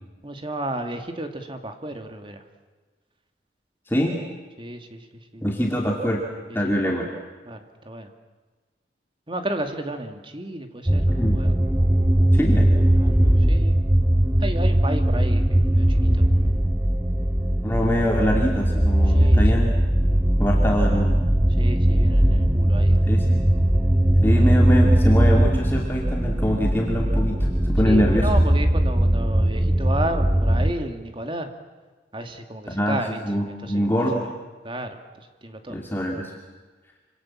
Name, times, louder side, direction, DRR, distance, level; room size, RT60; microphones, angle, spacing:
voice 1, 0.2-2.4 4.6-5.1 5.3-5.4 6.5-6.6 6.8-6.9 7.4-8.1 9.3-11.5 13.0-13.2 13.5-13.8 14.4-16.2 19.1-19.7 20.6-20.7 21.6-23.2 24.3-24.5 27.8-31.5 32.1-33.2 33.5-34.1 34.6-34.9 35.2-35.8, right 1 dB, 30° right, 6 dB, 2.4 m, -32 dB
voice 2, 3.9-4.2 5.4-6.2 6.5-7.0 11.2-11.4 12.3-12.7 17.6-19.7 20.4-21.2 23.1-23.4 24.2-28.3 32.7-34.3 35.7-36.3, equal, 10° left, -1 dB, 2.7 m, -24 dB
sound 1, 10.9-30.7, right 1 dB, 15° right, 1.0 m, -19 dB
27.0 x 26.5 x 7.5 m, 1.3 s
head